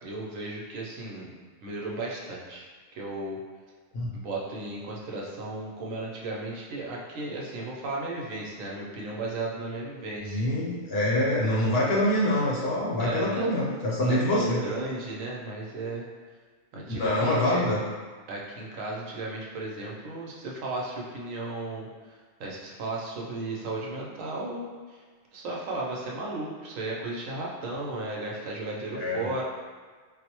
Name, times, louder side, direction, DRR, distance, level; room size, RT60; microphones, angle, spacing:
voice 1, 0.0-1.3 1.6-2.7 2.9-3.4 4.1-10.4 13.0-13.5 14.0-16.1 16.7-17.6 18.3-25.0 25.3-29.4, right 2 dB, 80° right, -3 dB, 1.0 m, -35 dB
voice 2, 10.2-14.6 16.9-17.8 28.9-29.2, left 1 dB, 55° left, -6 dB, 0.8 m, -25 dB
4.1 x 2.0 x 2.9 m, 1.5 s
omnidirectional pair, 1.4 m